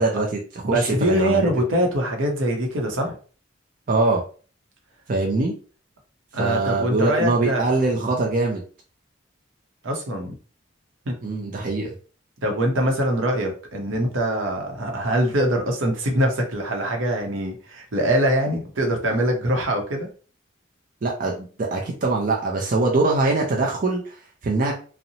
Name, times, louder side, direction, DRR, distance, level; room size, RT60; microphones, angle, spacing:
voice 1, 0.0-1.5 3.9-4.2 5.1-5.5 6.4-8.6 11.2-11.9 21.0-24.2 24.4-24.7, right 3 dB, 45° right, -1 dB, 0.4 m, -23 dB
voice 2, 0.6-3.2 6.3-7.7 9.8-10.3 11.1-11.2 12.4-20.1, right 1 dB, 75° right, 2 dB, 0.7 m, -23 dB
2.7 x 2.0 x 2.7 m, 0.38 s
head